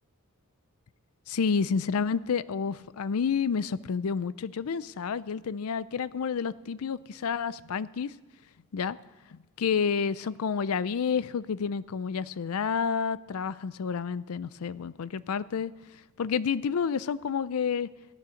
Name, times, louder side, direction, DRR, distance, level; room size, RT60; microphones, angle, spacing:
voice 1, 1.3-8.1 8.7-9.0 9.3-15.7 16.2-17.9, left 6 dB, 80° left, 17 dB, 0.5 m, -29 dB
14.5 x 9.4 x 6.4 m, 1.1 s
head